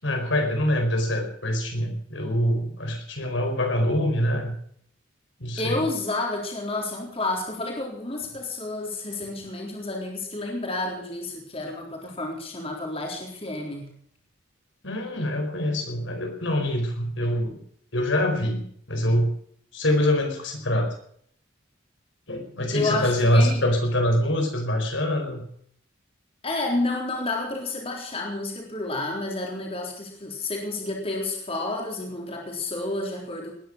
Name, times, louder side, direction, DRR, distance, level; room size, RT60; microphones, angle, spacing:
voice 1, 0.0-4.5 5.4-5.8 14.8-17.6 17.9-19.3 19.7-20.9 22.3-25.4, equal, 65° left, 4 dB, 4.5 m, -24 dB
voice 2, 5.6-13.9 22.7-23.6 26.4-33.5, left 2 dB, 30° left, 0 dB, 3.9 m, -30 dB
20.0 x 10.5 x 6.3 m, 0.64 s
head